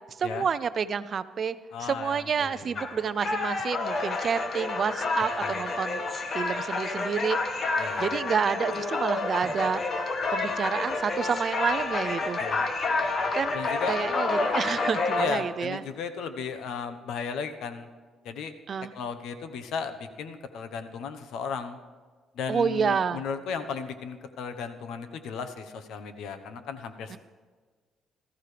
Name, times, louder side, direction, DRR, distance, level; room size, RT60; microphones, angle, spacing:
voice 1, 0.2-1.6 1.8-6.0 6.3-7.4 8.0-12.4 13.3-13.6 13.9-15.8 18.7-18.9 22.5-23.2 27.1-27.2, right 6 dB, 40° right, 14 dB, 0.5 m, -29 dB
voice 2, 1.7-2.8 5.4-5.6 7.8-8.1 12.4-12.6 13.5-14.0 15.2-17.9 18.2-18.5 18.9-21.8 22.3-27.2, left 6 dB, 80° left, 8 dB, 1.1 m, -35 dB
sound 1, 2.8-15.3, left 3 dB, 35° left, 1.3 m, -29 dB
19.5 x 14.0 x 3.4 m, 1.4 s
cardioid pair, 135°, 0 cm